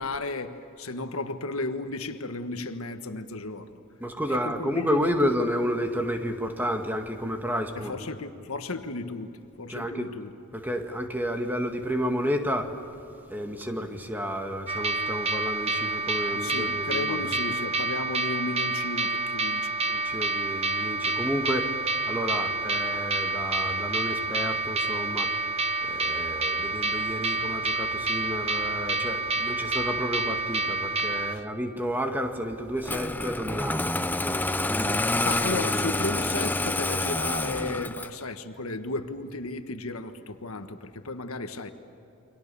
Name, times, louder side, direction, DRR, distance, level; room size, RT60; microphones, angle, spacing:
voice 1, 0.0-3.8 4.3-5.3 7.7-10.3 16.3-19.8 31.2-31.4 35.2-41.7, left 3 dB, 80° left, 7 dB, 1.5 m, -34 dB
voice 2, 4.0-8.0 9.7-10.1 10.5-12.7 13.3-17.3 19.9-21.8 22.1-25.3 25.8-35.0, equal, 10° right, 4 dB, 1.9 m, -31 dB
sound 1, 14.7-31.4, right 3 dB, 30° right, 1.0 m, -28 dB
Engine starting, 32.8-38.2, left 2 dB, 10° left, 0.6 m, -28 dB
29.0 x 25.0 x 7.0 m, 2.9 s
head